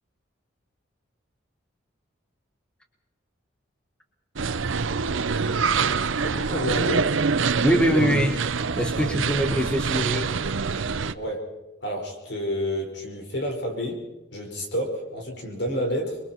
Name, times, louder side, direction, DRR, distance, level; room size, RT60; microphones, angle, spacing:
sound 1, 4.4-11.1, right 5 dB, 85° right, 0.7 m, -25 dB
voice 1, 6.2-7.1 11.1-11.5 11.8-14.0 14.3-16.2, equal, 60° left, 1 dB, 5.3 m, -29 dB
voice 2, 7.6-8.4 8.8-10.3, equal, 5° left, 4 dB, 1.5 m, -23 dB
27.0 x 22.5 x 4.6 m, 0.99 s
head